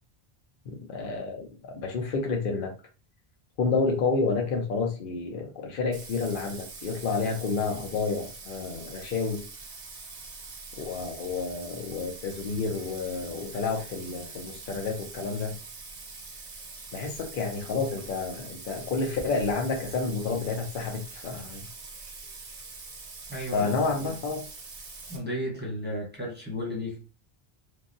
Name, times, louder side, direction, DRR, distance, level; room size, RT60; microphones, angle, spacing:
voice 1, 0.7-2.7 3.6-9.4 10.8-15.6 16.9-21.7 23.4-24.5, left 4 dB, 55° left, 2 dB, 0.8 m, -30 dB
Bathtub (filling or washing), 5.9-25.2, right 4 dB, 45° right, 0.7 m, -44 dB
voice 2, 23.3-24.2 25.1-27.0, equal, 10° right, -2 dB, 0.8 m, -34 dB
3.2 x 2.2 x 2.6 m, 0.35 s
omnidirectional pair, 1.1 m